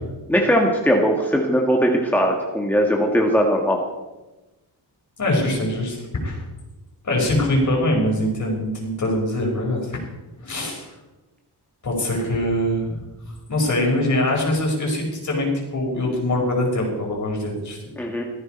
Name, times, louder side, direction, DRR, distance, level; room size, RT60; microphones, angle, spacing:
voice 1, 0.3-3.8 18.0-18.2, equal, 5° left, 0 dB, 1.9 m, -19 dB
voice 2, 5.2-6.4 7.0-10.0 10.4-10.9 11.8-12.9 13.5-17.8, left 1 dB, 45° left, 0 dB, 5.7 m, -23 dB
17.5 x 14.5 x 4.6 m, 1.1 s
wide cardioid pair, 125°, 42 cm